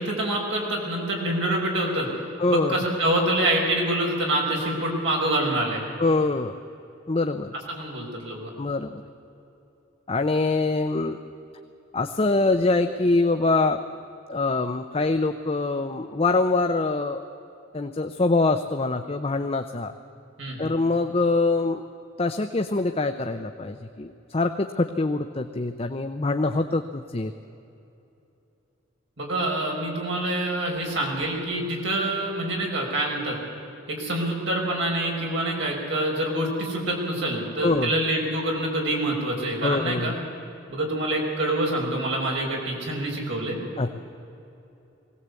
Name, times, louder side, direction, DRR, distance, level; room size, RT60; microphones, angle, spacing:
voice 1, 0.0-2.1 2.5-5.8 7.7-8.5 20.4-20.7 29.2-33.4 33.9-40.2 40.7-43.6, right 1 dB, 70° right, -1 dB, 5.4 m, -26 dB
voice 2, 2.4-2.8 6.0-6.6 7.1-7.5 8.6-9.0 10.1-11.2 11.9-13.8 14.3-17.3 17.7-19.9 20.6-21.9 22.2-27.3 37.6-37.9 39.6-40.2 43.8-43.9, left 3 dB, 30° left, 7 dB, 0.7 m, -24 dB
21.0 x 17.5 x 8.3 m, 2.9 s
head